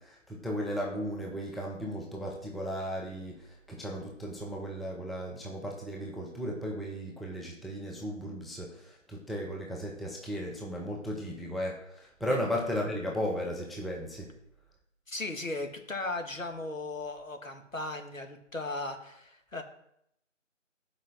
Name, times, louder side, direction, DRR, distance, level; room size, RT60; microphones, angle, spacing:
voice 1, 0.0-14.3, equal, ahead, -2 dB, 0.6 m, -35 dB
voice 2, 15.1-19.6, left 2 dB, 85° left, 4 dB, 1.8 m, -37 dB
5.0 x 5.0 x 6.3 m, 0.76 s
figure-of-eight pair, 170°, 38 cm